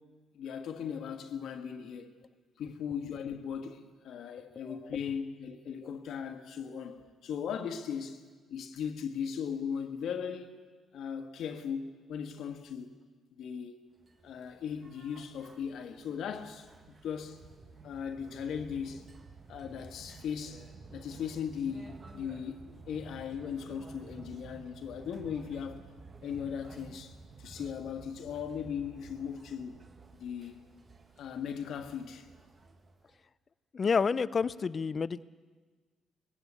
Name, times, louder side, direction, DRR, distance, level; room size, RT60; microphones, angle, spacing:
voice 1, 0.3-2.1 2.6-8.2 8.5-10.6 10.9-12.9 13.3-13.7 14.2-17.4 17.8-19.0 19.5-20.7 20.9-25.8 26.2-29.8 30.1-30.6 31.2-32.3, left 7 dB, 75° left, 1.6 m, -38 dB
sound 1, 14.0-33.2, right 4 dB, 35° right, 1.5 m, -52 dB
voice 2, 33.7-35.2, left 5 dB, 40° left, 0.6 m, -29 dB
20.0 x 16.5 x 8.2 m
cardioid pair, 90°, 0 cm